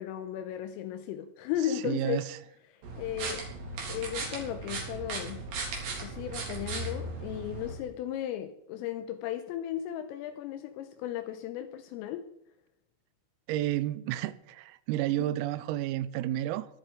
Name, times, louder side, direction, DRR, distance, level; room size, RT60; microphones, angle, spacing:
voice 1, 0.0-2.3 2.7-3.4 3.9-5.4 6.0-12.3, left 11 dB, 85° left, 3.4 m, -35 dB
voice 2, 1.8-2.2 13.5-16.7, right 13 dB, 90° right, 3.5 m, -31 dB
sound 1, 2.8-7.7, right 3 dB, 55° right, 5.4 m, -37 dB
20.0 x 11.5 x 5.0 m
omnidirectional pair, 6.0 m